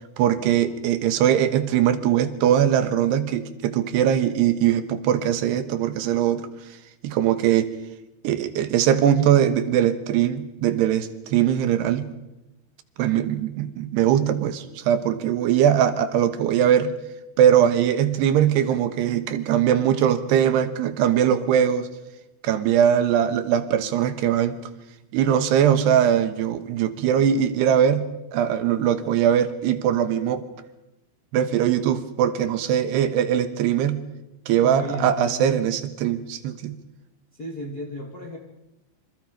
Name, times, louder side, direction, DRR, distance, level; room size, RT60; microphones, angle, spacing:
voice 1, 0.2-6.5 7.0-7.7 8.2-12.1 13.0-16.9 17.4-21.9 22.4-24.6 25.1-30.5 31.3-34.0 34.5-36.8, right 9 dB, 75° right, 10 dB, 3.2 m, -21 dB
voice 2, 34.6-35.5 37.4-38.4, left 1 dB, 35° left, 1 dB, 1.5 m, -34 dB
27.0 x 26.0 x 5.2 m, 0.93 s
omnidirectional pair, 5.0 m